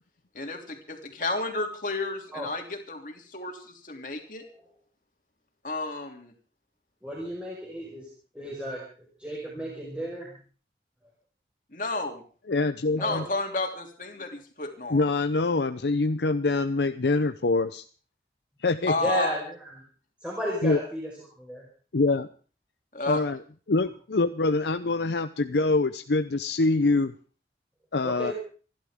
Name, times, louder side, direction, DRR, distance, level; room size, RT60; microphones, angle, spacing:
voice 1, 0.3-4.5 5.6-6.3 11.7-12.2 13.0-15.0 18.8-19.3 22.9-23.2, left 2 dB, 50° left, 3 dB, 3.0 m, -31 dB
voice 2, 7.0-8.1 8.3-8.8 9.2-10.4 13.0-13.3 19.0-19.8 20.2-21.1 21.4-21.6 28.0-28.3, equal, 5° right, -4 dB, 5.0 m, -33 dB
voice 3, 12.5-13.2 14.9-17.8 18.6-18.9 20.6-20.8 21.9-22.3 23.1-23.4 23.7-27.1 27.9-28.3, left 3 dB, 80° left, 9 dB, 0.7 m, -25 dB
28.0 x 12.0 x 3.7 m, 0.40 s
head